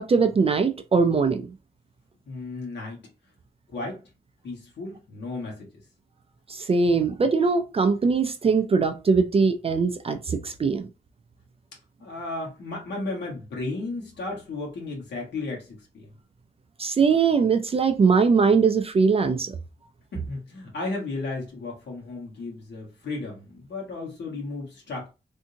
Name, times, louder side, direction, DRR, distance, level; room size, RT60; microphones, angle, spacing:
voice 1, 0.0-1.4 6.5-10.9 16.8-19.5, right 5 dB, 35° right, 0.4 m, -21 dB
voice 2, 2.3-3.0 3.7-4.0 4.4-5.7 12.0-16.1 20.1-25.1, left 2 dB, 85° left, 1.4 m, -34 dB
3.5 x 2.6 x 2.7 m
wide cardioid pair, 165°, 18 cm